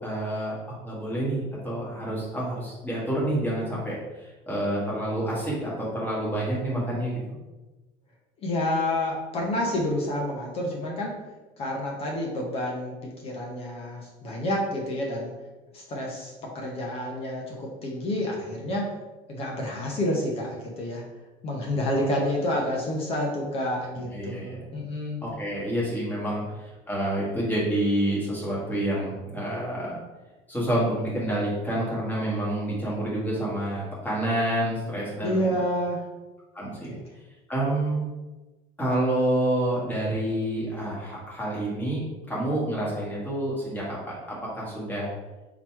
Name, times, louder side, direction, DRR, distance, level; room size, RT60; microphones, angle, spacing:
voice 1, 0.0-7.4 24.1-24.6 25.2-30.0 30.5-35.6 36.5-36.9 37.5-38.0 38.8-42.0 42.3-45.1, right 1 dB, 10° left, -6 dB, 1.5 m, -28 dB
voice 2, 8.4-11.2 11.6-13.0 13.2-15.3 15.7-18.9 19.3-21.0 21.4-25.2 35.2-36.0 36.9-37.0, left 1 dB, 40° left, -1 dB, 0.8 m, -29 dB
3.9 x 3.0 x 4.5 m, 1.1 s
cardioid pair, 160°, 16 cm